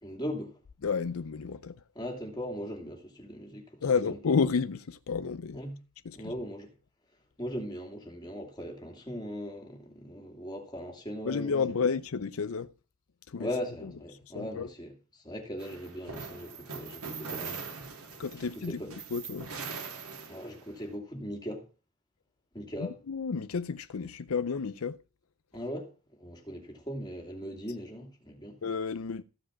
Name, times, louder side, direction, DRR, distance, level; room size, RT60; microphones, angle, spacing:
voice 1, 0.0-0.6 1.9-3.8 4.1-4.2 5.5-5.8 6.1-6.7 7.4-11.5 13.4-17.6 18.5-18.9 20.3-21.7 22.5-23.0 25.5-25.9 26.2-28.6, equal, 20° left, 2.8 m, -39 dB
voice 2, 0.8-1.8 3.8-5.6 6.0-6.3 11.2-12.7 13.3-13.5 13.8-13.9 14.2-14.7 18.2-19.5 22.8-25.0 28.6-29.2, left 5 dB, 70° left, 0.5 m, -31 dB
sound 1, 15.6-20.8, right 5 dB, 85° right, 3.1 m, -41 dB
15.0 x 5.1 x 7.2 m
head